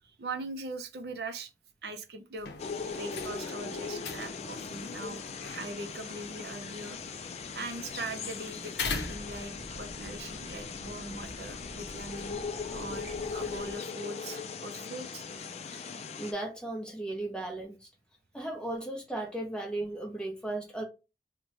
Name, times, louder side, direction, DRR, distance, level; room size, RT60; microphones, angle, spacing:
voice 1, 0.0-1.5 1.8-2.5 2.9-5.2 5.5-12.4 12.7-15.2, right 2 dB, 65° right, 0.5 m, -41 dB
sound 1, 2.4-9.9, left 4 dB, 75° left, 0.6 m, -42 dB
sound 2, 2.6-16.3, left 5 dB, 35° left, 0.3 m, -39 dB
sound 3, 8.8-13.7, equal, 40° right, 0.8 m, -48 dB
voice 2, 16.2-17.9 18.3-20.8, right 2 dB, 5° left, 0.8 m, -36 dB
3.0 x 2.1 x 3.9 m
head